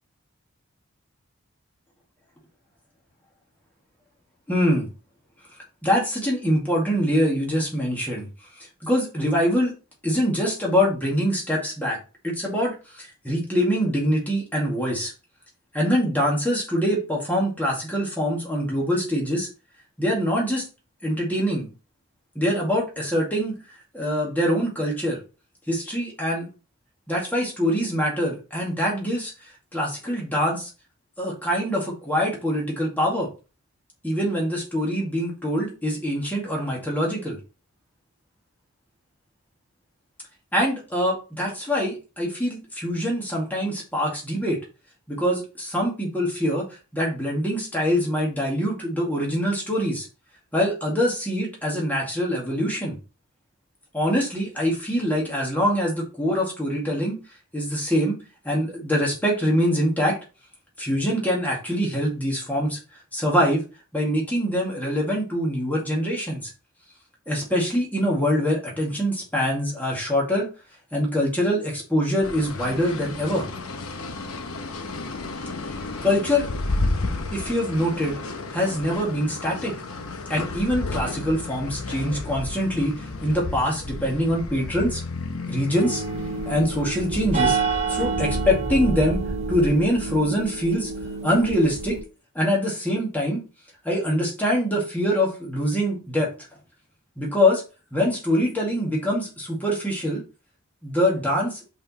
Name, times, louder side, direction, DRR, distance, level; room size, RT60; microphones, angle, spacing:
voice 1, 4.5-4.9 5.8-8.3 8.6-9.8 10.0-12.0 12.2-15.1 15.7-19.5 20.0-20.6 21.0-21.7 22.4-23.5 23.9-25.2 25.7-26.5 27.1-30.7 31.2-33.3 34.0-37.4 40.5-44.6 45.1-46.7 46.9-50.1 50.5-53.0 53.9-57.2 57.5-58.2 58.4-60.2 60.8-62.8 63.1-63.6 63.9-66.5 67.3-70.5 70.9-73.5 75.7-76.5 77.3-78.2 78.5-79.7 80.3-85.0 85.5-86.0 86.5-87.6 87.9-89.2 89.5-90.9 91.2-92.0 92.3-93.4 93.8-96.3 97.2-97.6 97.9-100.2 100.8-101.6, equal, 10° left, -3 dB, 2.0 m, -24 dB
sound 1, 72.2-88.2, left 2 dB, 85° left, 0.9 m, -32 dB
sound 2, 85.7-92.0, right 4 dB, 30° right, 0.8 m, -28 dB
5.3 x 4.5 x 4.2 m, 0.32 s
head